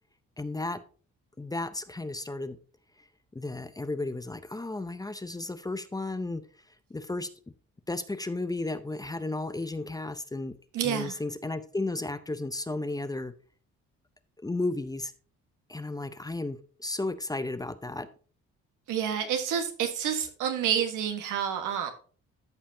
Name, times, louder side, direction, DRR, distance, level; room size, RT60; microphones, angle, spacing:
voice 1, 0.4-0.8 1.4-2.6 3.3-6.4 6.9-7.3 7.9-10.5 10.8-13.3 14.4-15.1 15.7-18.1, left 2 dB, 10° left, 12 dB, 0.6 m, -33 dB
voice 2, 10.7-11.2 18.9-21.9, right 8 dB, 90° right, 6 dB, 1.4 m, -29 dB
13.5 x 5.5 x 2.8 m, 0.40 s
cardioid pair, 90°, 30 cm